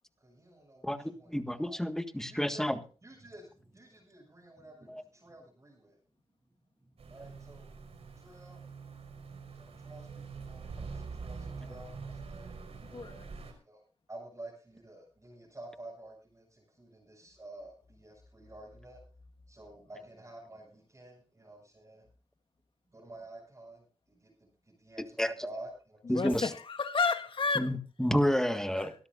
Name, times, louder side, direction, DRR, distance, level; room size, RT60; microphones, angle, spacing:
voice 1, 0.2-0.8 1.7-1.8 2.3-2.7 3.0-3.5 3.7-4.9 5.2-5.9 7.1-7.7 8.2-8.6 9.6-10.1 10.5-12.5 13.7-13.8 14.1-19.0 19.5-22.0 22.9-23.8 24.8-25.0 25.4-26.0 28.7-28.8, right 1 dB, 30° right, 7.6 m, -50 dB
voice 2, 0.8-2.8 4.9-5.0 25.0-25.5 26.1-26.5 27.6-28.9, equal, 5° left, 1.7 m, -30 dB
sound 1, 7.0-13.5, right 5 dB, 75° right, 4.9 m, -45 dB
voice 3, 12.8-13.3 26.0-27.7 28.8-28.9, left 4 dB, 55° left, 1.6 m, -31 dB
24.0 x 13.0 x 2.6 m
cardioid pair, 60°, 11 cm